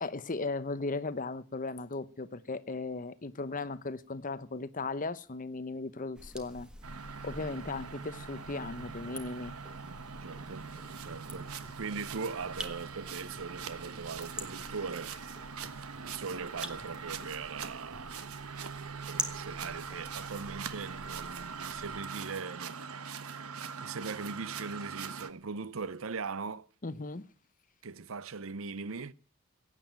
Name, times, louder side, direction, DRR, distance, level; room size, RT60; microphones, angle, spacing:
voice 1, 0.0-6.7 7.2-9.5 26.8-27.3, left 3 dB, 40° left, 0.8 m, -37 dB
sound 1, 6.2-22.0, equal, 5° right, 1.5 m, -47 dB
sound 2, 6.8-25.3, right 6 dB, 85° right, 1.3 m, -42 dB
sound 3, 8.8-18.3, equal, 20° right, 3.9 m, -57 dB
voice 2, 10.2-10.7 11.0-15.2 16.0-18.2 19.1-22.8 23.8-26.7 27.8-29.1, right 5 dB, 65° right, 0.7 m, -40 dB
16.5 x 9.3 x 8.8 m
head